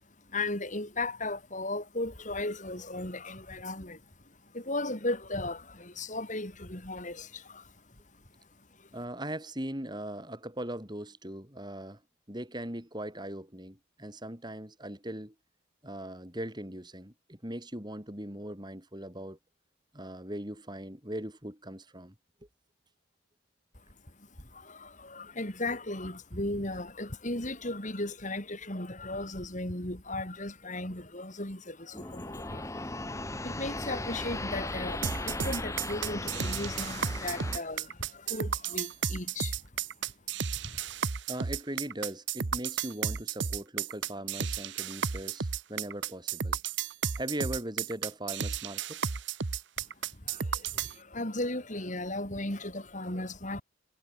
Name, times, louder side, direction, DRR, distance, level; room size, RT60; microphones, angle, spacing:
voice 1, 0.0-9.0 23.7-39.7 40.5-40.8 49.8-53.6, left 2 dB, 35° left, 4.8 m, -37 dB
voice 2, 8.9-12.0 12.3-15.3 15.8-19.4 19.9-22.1 41.3-46.6 47.2-49.0, right 1 dB, 20° right, 4.1 m, -39 dB
sound 1, 31.9-37.6, left 2 dB, 15° left, 1.6 m, -37 dB
sound 2, 35.0-50.9, right 7 dB, 60° right, 0.9 m, -33 dB
head